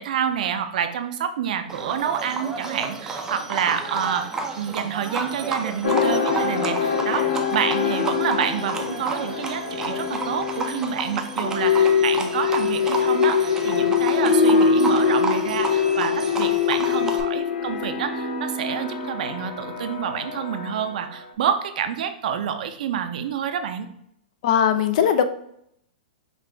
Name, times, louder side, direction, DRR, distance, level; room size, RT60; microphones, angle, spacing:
voice 1, 0.0-4.3 4.6-23.9, right 8 dB, 60° right, 9 dB, 0.5 m, -28 dB
Livestock farm animals working animals, 1.7-17.2, right 3 dB, 10° right, 0.4 m, -31 dB
sound 1, 5.8-21.1, left 6 dB, 85° left, 0.8 m, -23 dB
voice 2, 24.4-25.2, left 8 dB, 50° left, 10 dB, 0.4 m, -19 dB
5.3 x 2.4 x 3.3 m, 0.75 s
hypercardioid pair, 150°, 5 cm